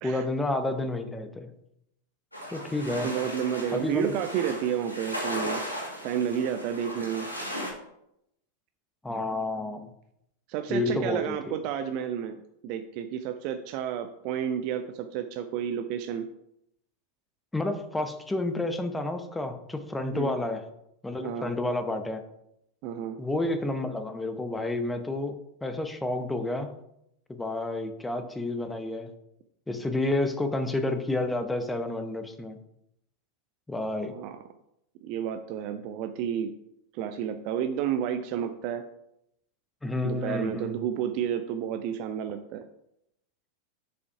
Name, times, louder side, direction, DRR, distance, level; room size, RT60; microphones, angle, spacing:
voice 1, 0.0-1.5 2.5-3.1 3.7-4.1 9.0-9.9 10.7-11.6 17.5-20.6 21.0-22.2 23.2-26.7 27.3-29.1 29.7-32.6 33.7-34.1 39.8-40.7, left 2 dB, 10° left, 8 dB, 0.8 m, -30 dB
sound 1, 2.3-7.7, equal, 85° left, 2.0 m, -36 dB
voice 2, 2.9-5.6 6.0-7.3 10.5-12.4 12.6-16.3 20.1-20.3 21.2-21.5 22.8-23.2 34.1-34.4 35.0-36.5 36.9-38.8 40.0-42.6, right 9 dB, 45° right, 7 dB, 0.5 m, -31 dB
6.8 x 5.1 x 4.8 m, 0.80 s
figure-of-eight pair, 90°, 0 cm